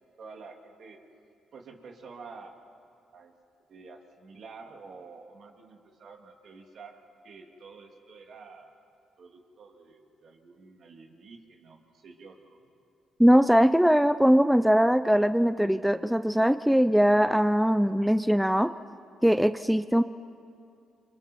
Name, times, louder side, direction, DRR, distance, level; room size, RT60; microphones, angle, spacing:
voice 1, 0.2-1.0 1.5-2.5 3.1-3.3 3.7-8.7 9.2-12.6, right 4 dB, 60° right, 2 dB, 3.0 m, -49 dB
voice 2, 13.2-18.7 19.2-20.0, equal, ahead, 11 dB, 0.5 m, -21 dB
28.5 x 25.0 x 4.6 m, 2.4 s
cardioid pair, 90°, 0 cm